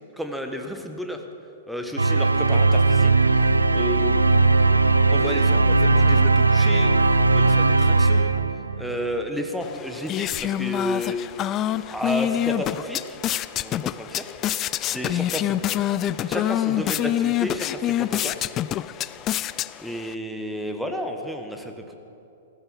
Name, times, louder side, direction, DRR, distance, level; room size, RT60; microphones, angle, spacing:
voice 1, 0.2-1.2 1.7-3.4 3.7-4.2 5.1-8.3 8.8-11.2 11.9-13.2 13.6-14.3 14.9-15.6 16.3-18.5 19.8-21.9, equal, ahead, 4 dB, 1.3 m, -32 dB
sound 1, 2.0-9.0, right 3 dB, 80° right, 0.6 m, -18 dB
sound 2, 9.6-20.1, left 12 dB, 30° left, 0.3 m, -26 dB
15.0 x 14.0 x 5.7 m, 2.7 s
figure-of-eight pair, 105°, 0 cm